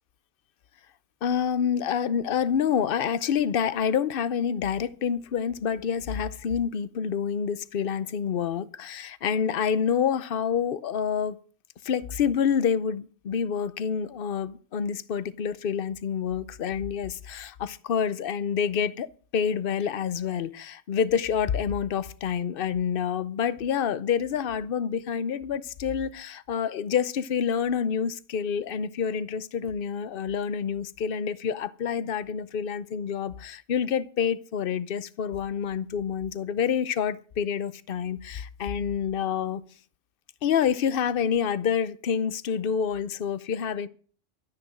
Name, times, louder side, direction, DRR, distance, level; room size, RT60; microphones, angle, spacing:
voice 1, 1.2-11.4 11.8-19.1 19.3-39.6 40.4-43.9, left 7 dB, 55° left, 0.9 m, -27 dB
12.5 x 10.5 x 6.2 m
omnidirectional pair, 1.3 m